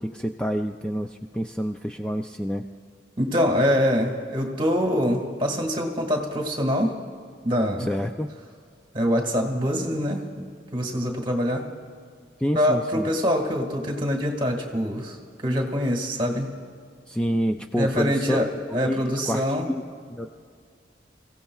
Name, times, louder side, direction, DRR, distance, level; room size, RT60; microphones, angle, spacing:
voice 1, 0.0-2.6 7.8-8.3 12.4-13.1 17.1-18.4 18.7-19.8 20.1-20.3, equal, 5° left, 4 dB, 0.3 m, -28 dB
voice 2, 3.2-7.0 7.4-7.9 8.9-10.4 10.7-11.7 12.5-15.2 15.4-16.5 17.3-17.4 17.7-19.7, equal, 30° right, 2 dB, 1.9 m, -24 dB
27.5 x 16.0 x 2.4 m, 2.2 s
head